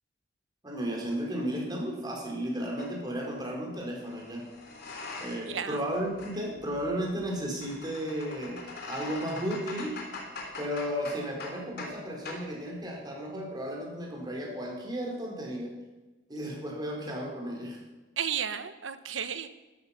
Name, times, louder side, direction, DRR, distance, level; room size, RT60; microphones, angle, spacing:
voice 1, 0.6-4.5 5.2-9.9 10.6-15.7 16.3-17.8, equal, 20° right, -1 dB, 4.4 m, -34 dB
sound 1, 2.8-3.0 4.0-5.6 5.9-12.0 12.3-12.5, left 3 dB, 60° left, 3.3 m, -42 dB
voice 2, 5.5-5.8 18.2-19.5, right 8 dB, 85° right, 11 dB, 1.1 m, -33 dB
13.0 x 13.0 x 5.9 m, 1.1 s
head